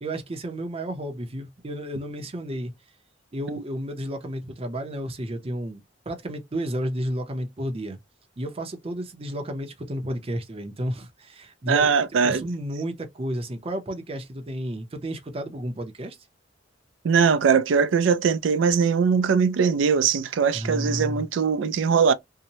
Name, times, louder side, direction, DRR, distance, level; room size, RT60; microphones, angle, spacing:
voice 1, 0.0-2.7 3.3-8.0 8.4-11.9 12.2-16.2 20.5-21.3, equal, 30° right, 0.6 m, -32 dB
voice 2, 11.7-12.5 17.0-22.1, right 6 dB, 85° right, 0.4 m, -21 dB
2.7 x 2.1 x 2.8 m
head